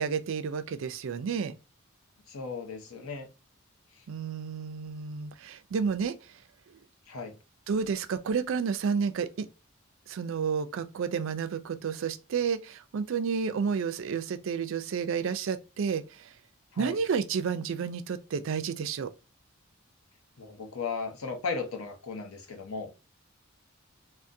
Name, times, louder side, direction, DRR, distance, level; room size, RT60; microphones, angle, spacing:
voice 1, 0.0-1.6 4.1-6.4 7.7-9.5 10.1-16.3 16.8-19.1, right 6 dB, 65° right, 0.4 m, -31 dB
voice 2, 2.3-3.3 3.9-4.0 7.1-7.4 16.7-17.0 20.4-22.9, left 4 dB, 85° left, 0.7 m, -36 dB
3.7 x 2.1 x 2.6 m
head